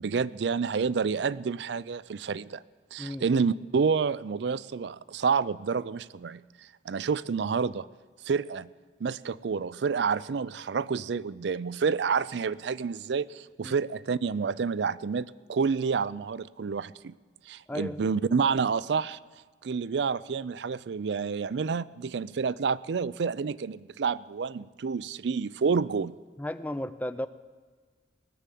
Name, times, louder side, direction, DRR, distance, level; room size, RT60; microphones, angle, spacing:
voice 1, 0.0-2.6 2.9-6.4 6.9-7.9 8.2-8.7 9.0-17.1 17.5-19.2 19.6-26.2, right 5 dB, 75° right, 19 dB, 0.4 m, -29 dB
voice 2, 17.7-18.0 26.4-27.3, left 1 dB, 10° left, 13 dB, 0.4 m, -34 dB
18.5 x 7.0 x 9.1 m, 1.5 s
head